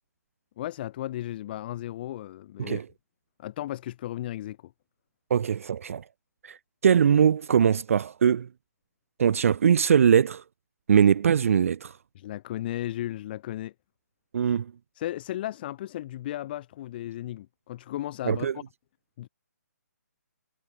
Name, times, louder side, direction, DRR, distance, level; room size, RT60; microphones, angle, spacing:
voice 1, 0.6-2.8 3.4-4.7 12.2-13.7 14.9-18.5 19.2-19.3, left 13 dB, 35° left, 2.1 m, -35 dB
voice 2, 5.3-6.0 6.4-8.5 9.2-10.4 10.9-11.9 14.3-14.7 18.3-18.6, right 8 dB, 50° right, 0.4 m, -22 dB
figure-of-eight pair, 150°, 9 cm